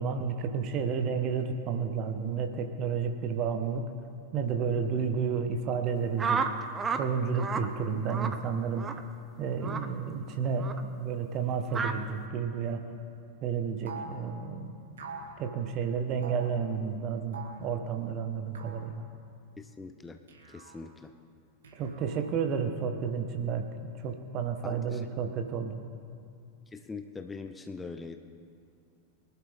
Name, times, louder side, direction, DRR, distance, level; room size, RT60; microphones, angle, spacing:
voice 1, 0.0-3.9 4.3-6.4 7.0-8.9 9.4-12.8 13.4-14.8 15.4-19.0 21.8-23.7 24.0-25.8, right 6 dB, 35° right, 6 dB, 1.3 m, -31 dB
sound 1, 6.2-7.1 7.3-7.7 8.1-8.4 8.8-9.0 9.6-9.9 10.6-10.8 11.7-11.9, right 5 dB, 20° right, 0.9 m, -31 dB
sound 2, 13.9-14.2 15.0-15.3 16.2-16.5 17.3-17.7 18.5-18.9 20.3-20.8 21.6-22.3, right 4 dB, 65° right, 1.9 m, -44 dB
voice 2, 19.6-20.2 20.5-21.1 24.6-25.0 26.7-28.2, left 4 dB, 10° left, 6 dB, 0.7 m, -42 dB
23.5 x 11.5 x 3.6 m, 2.4 s
figure-of-eight pair, 90°, 0 cm